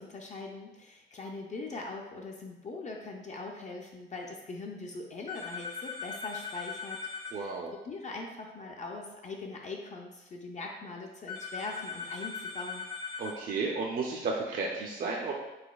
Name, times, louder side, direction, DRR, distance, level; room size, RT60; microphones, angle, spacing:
voice 1, 0.0-7.0 7.3-12.9, left 3 dB, 35° left, 0 dB, 0.4 m, -41 dB
sound 1, 5.3-7.3 11.3-13.3, left 5 dB, 75° left, 1.4 m, -39 dB
voice 2, 7.3-7.7 13.2-15.3, right 4 dB, 45° right, -1 dB, 0.5 m, -33 dB
4.0 x 2.7 x 2.3 m, 1.0 s
cardioid pair, 90°, 20 cm